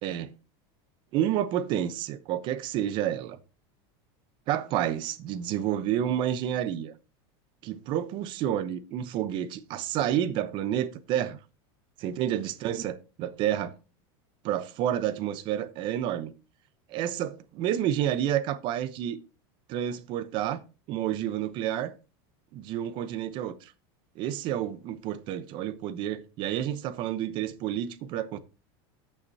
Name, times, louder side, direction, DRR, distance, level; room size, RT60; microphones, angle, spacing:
voice 1, 0.0-0.3 1.1-3.4 4.5-6.9 7.6-11.4 12.0-13.7 14.4-16.3 16.9-19.2 19.7-20.6 20.9-21.9 22.5-23.7 24.2-28.4, right 11 dB, 40° right, 0.8 m, -29 dB
13.5 x 5.7 x 2.8 m
supercardioid pair, 165°, 13 cm